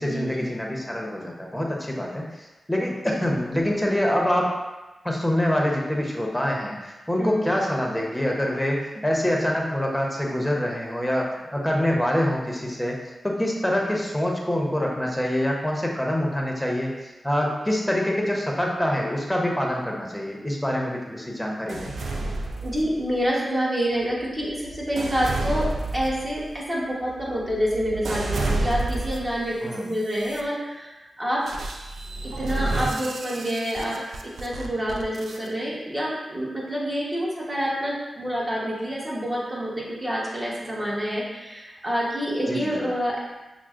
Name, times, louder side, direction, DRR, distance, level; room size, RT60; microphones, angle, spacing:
voice 1, 0.0-4.5 5.0-13.0 13.2-21.9 29.6-29.9 42.5-42.7, left 1 dB, 5° left, -2 dB, 0.8 m, -25 dB
voice 2, 7.2-7.5 22.6-31.5 32.2-34.0 34.2-43.2, equal, 30° right, -5 dB, 1.1 m, -27 dB
sound 1, 21.7-23.3 23.9-29.4 30.0-30.4 31.5-35.5, right 2 dB, 80° right, 0.3 m, -31 dB
5.7 x 2.1 x 2.4 m, 1.1 s
cardioid pair, 55°, 0 cm